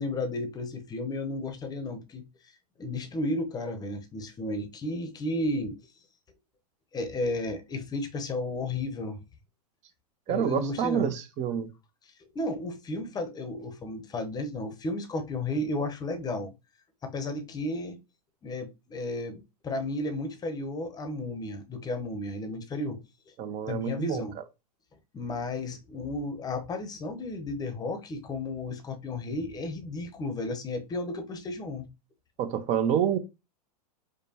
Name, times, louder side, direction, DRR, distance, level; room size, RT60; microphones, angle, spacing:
voice 1, 0.0-2.2 2.8-5.7 6.9-9.2 10.3-11.1 12.3-16.5 17.0-18.0 18.4-23.0 23.7-24.4 25.1-31.9, left 2 dB, 20° left, 0.8 m, -33 dB
voice 2, 10.3-11.7 23.4-24.2 32.4-33.2, right 9 dB, 35° right, 0.7 m, -27 dB
5.0 x 2.1 x 2.8 m
hypercardioid pair, 105°, 21 cm